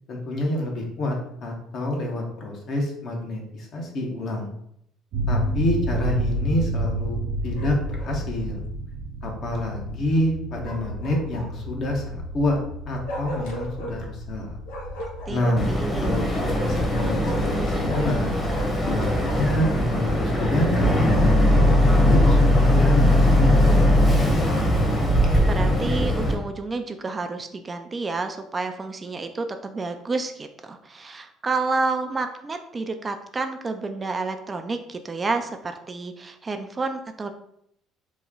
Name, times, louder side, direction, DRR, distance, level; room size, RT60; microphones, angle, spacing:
voice 1, 0.1-4.5 5.3-8.6 9.2-14.6 15.3-18.3 18.8-24.2, left 1 dB, 55° left, 0 dB, 1.0 m, -28 dB
sound 1, 5.1-20.1, right 1 dB, 70° right, 0.7 m, -32 dB
Bark, 7.5-8.2 10.6-11.7 13.1-14.0 14.7-15.8 16.5-18.2 18.5-20.9 21.6-22.5, equal, 85° left, 0.7 m, -36 dB
voice 2, 15.3-16.3 25.5-37.3, right 3 dB, 30° right, 7 dB, 0.4 m, -30 dB
Boat Water vehicle, 15.6-26.3, left 1 dB, 25° left, 1.0 m, -20 dB
3.1 x 2.2 x 3.7 m, 0.73 s
supercardioid pair, 80°, 0 cm